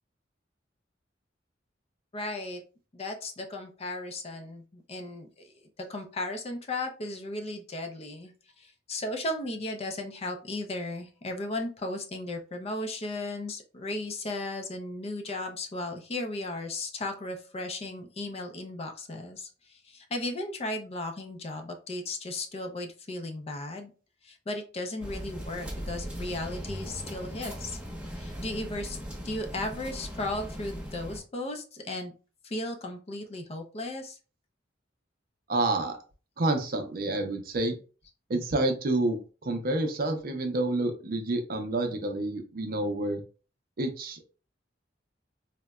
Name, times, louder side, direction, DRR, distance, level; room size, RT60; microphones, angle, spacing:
voice 1, 2.1-2.6 2.9-5.3 5.8-23.9 24.2-27.8 28.1-32.1 32.4-34.2, left 2 dB, 35° left, 4 dB, 0.5 m, -36 dB
sound 1, 25.0-31.2, equal, 5° right, 0.9 m, -39 dB
voice 2, 35.5-36.0 36.4-37.8 38.3-43.2 43.8-44.2, right 2 dB, 50° right, 5 dB, 0.5 m, -28 dB
3.8 x 2.1 x 2.2 m, 0.35 s
head